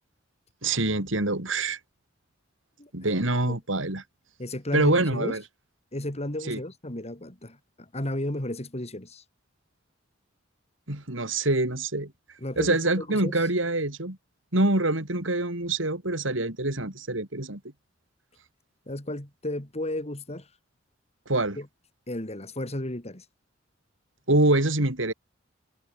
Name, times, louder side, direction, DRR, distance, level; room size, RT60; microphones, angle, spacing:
voice 1, 0.6-1.8 2.9-4.0 4.7-5.4 6.5-6.6 10.9-12.1 12.6-14.2 14.5-17.6 21.3-21.6 24.3-25.1, right 2 dB, 80° right, 4.3 m, -25 dB
voice 2, 4.4-5.4 5.9-9.2 12.4-13.4 18.9-20.5 21.6-21.7 22.1-23.3, left 1 dB, 35° left, 3.5 m, -33 dB
head